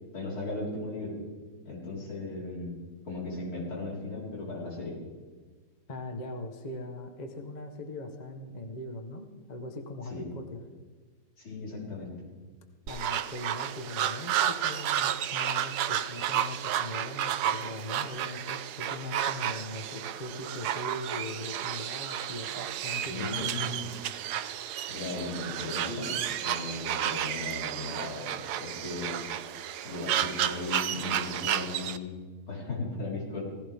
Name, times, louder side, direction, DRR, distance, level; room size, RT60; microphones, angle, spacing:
voice 1, 0.1-1.2 1.7-2.8 3.1-5.0 10.1-10.3 11.4-12.1 23.0-23.9 24.9-29.3 29.8-33.4, left 2 dB, 75° left, -5 dB, 5.4 m, -37 dB
voice 2, 5.9-10.6 12.9-23.7, left 1 dB, 30° left, 5 dB, 1.0 m, -40 dB
sound 1, 12.9-32.0, right 10 dB, 75° right, 0.9 m, -32 dB
17.5 x 15.5 x 3.6 m, 1.4 s
omnidirectional pair, 2.4 m